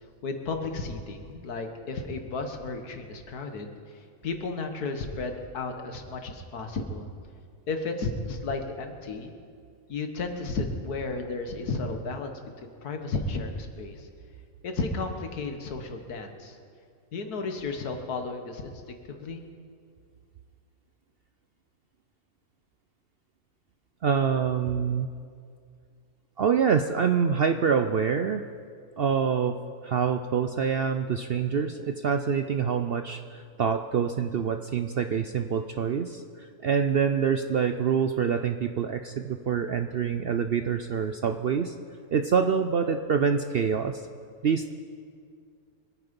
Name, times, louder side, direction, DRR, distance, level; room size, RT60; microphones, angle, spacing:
voice 1, 0.2-7.1 7.7-9.3 9.9-12.3 12.6-14.1 14.6-16.6 17.1-19.4, left 3 dB, 90° left, 5 dB, 1.9 m, -33 dB
voice 2, 24.0-25.1 26.4-28.5 29.0-41.7 42.1-44.0 44.4-44.7, right 7 dB, 65° right, 8 dB, 0.6 m, -26 dB
25.0 x 9.6 x 5.3 m, 2.3 s
omnidirectional pair, 1.6 m